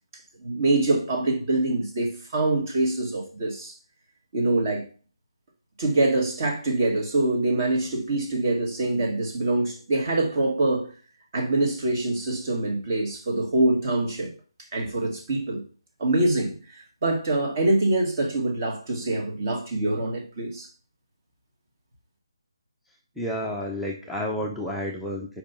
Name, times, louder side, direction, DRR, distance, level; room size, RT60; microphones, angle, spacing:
voice 1, 0.4-3.7 4.3-4.9 5.8-10.9 11.3-14.3 14.7-15.6 16.0-20.7, right 2 dB, 35° right, 1.8 m, -24 dB
voice 2, 23.2-25.4, equal, ahead, 0.5 m, -30 dB
5.1 x 4.9 x 5.5 m
figure-of-eight pair, 155°, 3 cm